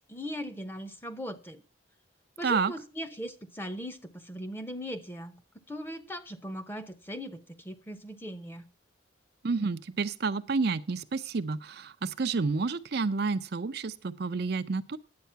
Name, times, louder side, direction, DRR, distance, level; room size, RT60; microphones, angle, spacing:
voice 1, 0.1-1.6 2.4-5.3 5.7-8.7, equal, 10° left, 0.8 m, -39 dB
voice 2, 2.4-2.7 9.4-15.0, right 4 dB, 55° right, 0.5 m, -30 dB
10.5 x 8.2 x 5.7 m
head